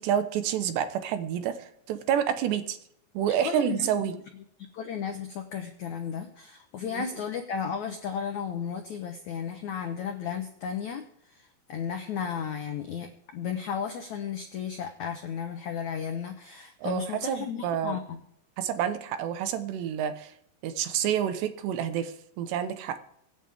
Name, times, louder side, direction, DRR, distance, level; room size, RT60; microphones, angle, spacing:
voice 1, 0.0-2.8 3.1-4.1 6.9-7.1 16.8-18.0 18.6-20.3 20.6-23.0, right 9 dB, 80° right, 10 dB, 3.2 m, -29 dB
voice 2, 3.3-4.2 4.7-11.1 11.3-18.2, left 7 dB, 85° left, 6 dB, 1.6 m, -34 dB
24.5 x 9.3 x 3.5 m, 0.72 s
omnidirectional pair, 5.0 m